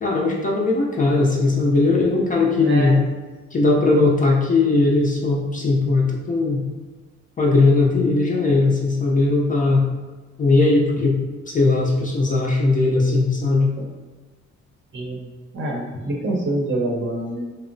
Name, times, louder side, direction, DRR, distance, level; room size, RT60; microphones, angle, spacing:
voice 1, 0.0-3.0 3.5-6.6 7.4-9.8 10.4-11.2 11.5-13.7, left 3 dB, 25° left, -2 dB, 0.4 m, -18 dB
voice 2, 2.6-3.0 13.8-13.9 14.9-15.2 15.5-17.5, right 1 dB, 40° right, -1 dB, 0.7 m, -25 dB
2.8 x 2.0 x 2.5 m, 1.3 s
cardioid pair, 80°, 30 cm